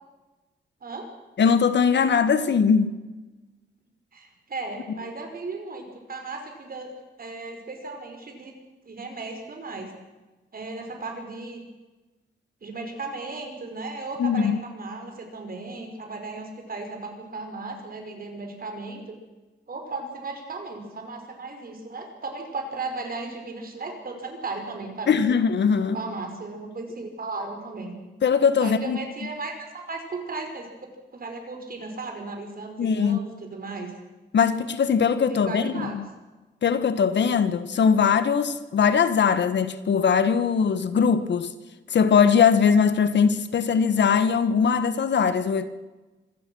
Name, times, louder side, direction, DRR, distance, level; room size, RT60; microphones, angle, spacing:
voice 1, 1.4-2.9 14.2-14.6 25.1-26.0 28.2-29.0 32.8-33.2 34.3-36.1 36.6-41.5 41.9-45.7, left 6 dB, 80° left, 1.5 m, -21 dB
voice 2, 4.1-6.9 7.2-8.5 8.8-9.9 10.5-11.6 12.6-19.2 19.7-25.2 25.9-28.0 28.6-30.7 31.1-33.9 35.3-36.0, right 3 dB, 55° right, 5.3 m, -36 dB
25.5 x 16.5 x 6.3 m
cardioid pair, 90°, 18 cm